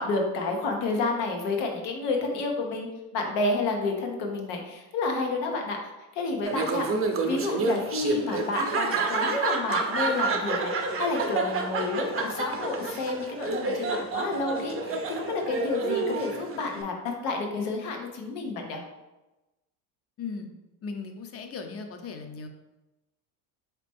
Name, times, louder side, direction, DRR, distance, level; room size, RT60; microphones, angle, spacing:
voice 1, 0.0-2.9 3.1-5.8 6.1-6.9 7.2-18.8, left 3 dB, 85° left, 2 dB, 1.0 m, -30 dB
Laughter, 6.4-16.8, right 3 dB, 30° right, 0.6 m, -29 dB
voice 2, 20.2-20.5 20.8-22.5, left 5 dB, 30° left, 6 dB, 0.6 m, -37 dB
4.1 x 2.9 x 3.4 m, 1.0 s
supercardioid pair, 85°, 45 cm